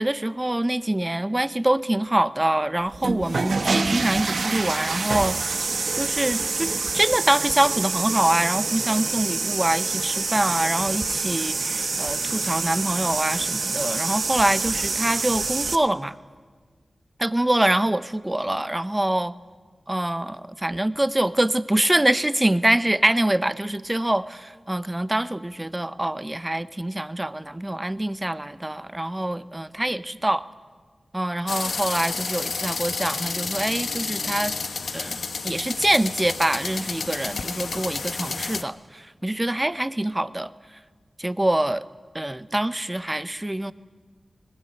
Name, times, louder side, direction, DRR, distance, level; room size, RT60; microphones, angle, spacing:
voice 1, 0.0-5.4 5.9-16.2 17.2-19.3 19.9-30.4 31.1-34.5 34.9-40.5 41.2-41.8 42.1-43.7, right 1 dB, 15° right, 15 dB, 0.7 m, -25 dB
sound 1, 2.9-15.8, right 4 dB, 65° right, 1.1 m, -26 dB
sound 2, 31.5-38.6, left 4 dB, 80° left, 1.0 m, -30 dB
21.5 x 19.0 x 9.9 m, 1.5 s
wide cardioid pair, 80°, 0 cm